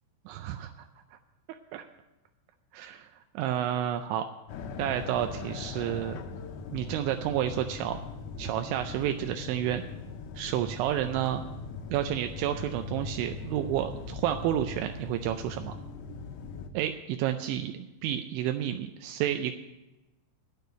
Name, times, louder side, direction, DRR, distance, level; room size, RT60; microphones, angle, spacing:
voice 1, 0.3-0.9 1.7-1.9 2.7-3.1 3.4-4.3 4.8-6.2 6.7-8.0 8.4-9.8 10.4-11.4 11.9-15.7 16.7-17.7 18.0-19.5, right 11 dB, 85° right, 7 dB, 2.8 m, -30 dB
sound 1, 4.5-16.7, left 4 dB, 85° left, 2.1 m, -40 dB
10.5 x 6.8 x 9.1 m, 1.0 s
omnidirectional pair, 5.4 m